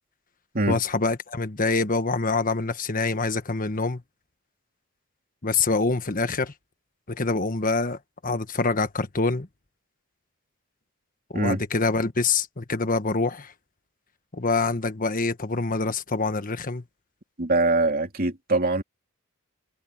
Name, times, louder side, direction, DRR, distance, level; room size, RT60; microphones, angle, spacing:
voice 1, 0.7-4.0 5.4-6.5 7.1-9.5 11.3-13.5 14.3-16.8, left 3 dB, 40° left, 1.4 m, -25 dB
voice 2, 17.4-18.8, right 2 dB, 45° right, 2.8 m, -23 dB
head